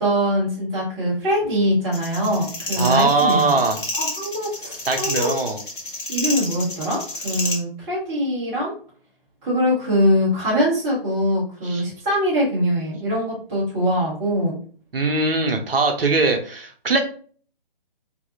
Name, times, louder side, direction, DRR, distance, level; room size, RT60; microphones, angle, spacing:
voice 1, 0.0-3.6 3.9-5.3 6.1-8.7 9.4-14.6, equal, 10° right, -7 dB, 0.8 m, -22 dB
sound 1, 1.9-7.6, left 2 dB, 60° left, 1.0 m, -30 dB
voice 2, 2.8-3.8 4.9-5.6 11.6-11.8 14.9-17.0, right 3 dB, 75° right, 4 dB, 0.6 m, -20 dB
2.6 x 2.3 x 2.6 m, 0.43 s
figure-of-eight pair, 140°, 29 cm